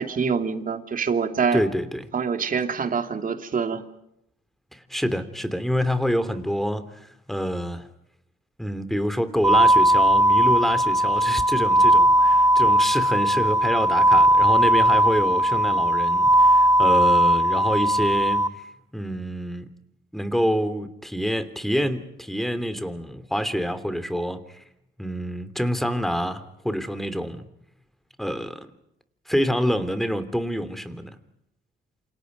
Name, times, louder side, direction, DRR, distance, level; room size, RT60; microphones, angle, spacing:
voice 1, 0.0-1.6 2.1-3.8, right 6 dB, 45° right, 7 dB, 2.8 m, -25 dB
voice 2, 1.5-2.0 4.7-7.9 8.6-18.4 18.9-19.6 20.1-24.6 25.0-27.4 28.2-28.7 29.3-31.2, equal, ahead, 11 dB, 3.0 m, -27 dB
sound 1, 9.4-18.5, right 1 dB, 15° right, 2.2 m, -18 dB
28.5 x 27.0 x 5.3 m, 0.82 s
cardioid pair, 90°, 20 cm